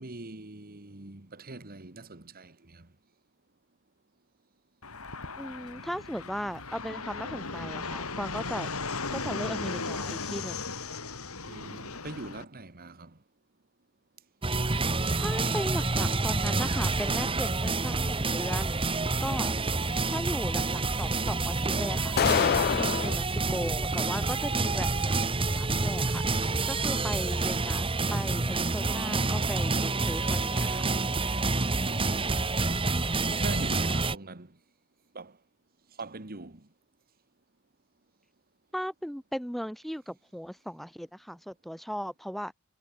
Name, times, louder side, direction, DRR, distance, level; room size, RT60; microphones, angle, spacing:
voice 1, 0.0-2.9 11.5-13.2 33.2-34.6 35.1-35.4 36.0-36.6, right 2 dB, 45° right, 1.8 m, -42 dB
Fixed-wing aircraft airplane, 4.8-12.4, left 4 dB, 75° left, 5.9 m, -36 dB
voice 2, 5.4-8.7 9.1-10.6 15.2-18.8 19.2-19.5 20.1-26.2 26.6-30.8 38.7-42.5, equal, ahead, 2.6 m, -37 dB
sound 1, 14.4-34.1, right 3 dB, 25° right, 1.5 m, -28 dB
sound 2, 22.2-23.2, left 8 dB, 45° left, 0.3 m, -25 dB
head